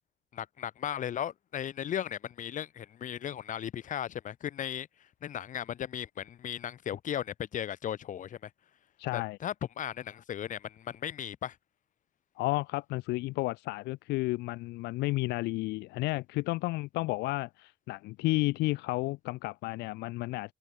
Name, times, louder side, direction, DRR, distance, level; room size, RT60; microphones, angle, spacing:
voice 1, 0.3-4.9 5.2-8.5 9.1-11.6, left 10 dB, 50° left, 1.3 m, -36 dB
voice 2, 9.0-9.4 12.4-20.5, left 21 dB, 80° left, 0.4 m, -32 dB
open air
cardioid pair, 110°, 17 cm